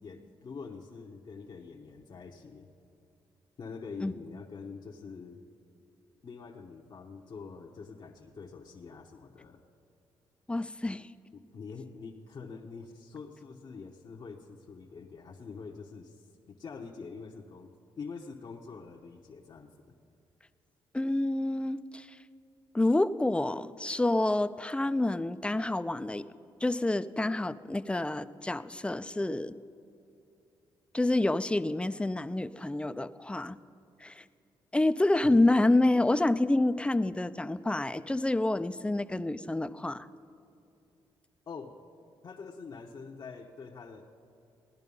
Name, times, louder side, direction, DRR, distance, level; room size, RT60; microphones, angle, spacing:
voice 1, 0.0-2.7 3.6-5.4 6.2-9.6 11.3-17.7 18.0-19.9 41.5-41.8 42.2-44.1, left 5 dB, 50° left, 0 dB, 0.9 m, -45 dB
voice 2, 10.5-11.1 20.9-22.2 22.7-26.3 26.6-29.6 30.9-33.6 34.0-34.2 34.7-40.1, left 2 dB, 10° left, 12 dB, 0.5 m, -28 dB
16.5 x 10.5 x 5.4 m, 2.7 s
cardioid pair, 70°, 9 cm